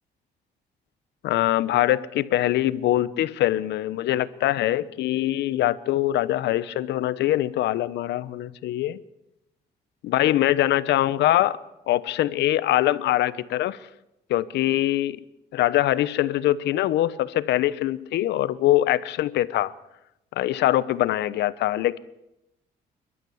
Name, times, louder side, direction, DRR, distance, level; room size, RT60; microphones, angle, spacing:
voice 1, 1.2-9.0 10.0-11.6 11.9-13.8 14.3-15.2 15.5-19.7 20.4-22.0, left 14 dB, 80° left, 0.9 m, -23 dB
28.0 x 12.5 x 7.9 m
cardioid pair, 105°, 18 cm